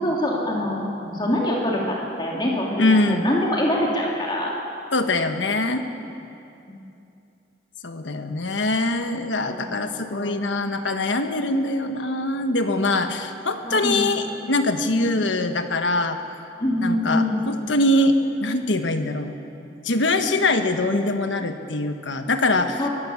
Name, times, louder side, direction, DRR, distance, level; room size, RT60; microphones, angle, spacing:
voice 1, 0.0-4.5 9.5-10.3 13.6-14.0 15.1-15.2 16.6-17.4 22.8-22.9, left 1 dB, 25° left, -3 dB, 2.9 m, -25 dB
voice 2, 2.8-3.3 4.9-5.8 7.8-16.2 16.8-19.3 19.8-22.8, left 2 dB, 85° left, 7 dB, 1.4 m, -23 dB
23.0 x 15.5 x 7.2 m, 2.7 s
head